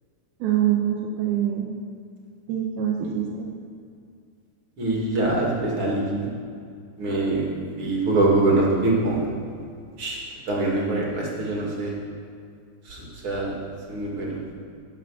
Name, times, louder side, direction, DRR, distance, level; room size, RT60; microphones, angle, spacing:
voice 1, 0.4-1.7 2.5-3.5, right 10 dB, 85° right, -1 dB, 2.8 m, -24 dB
voice 2, 4.8-6.1 7.0-7.4 7.8-9.2 10.0-10.2 10.5-11.9 12.9-13.5 13.9-14.4, right 2 dB, 40° right, -3 dB, 2.8 m, -23 dB
12.0 x 7.7 x 7.4 m, 2.3 s
omnidirectional pair, 4.4 m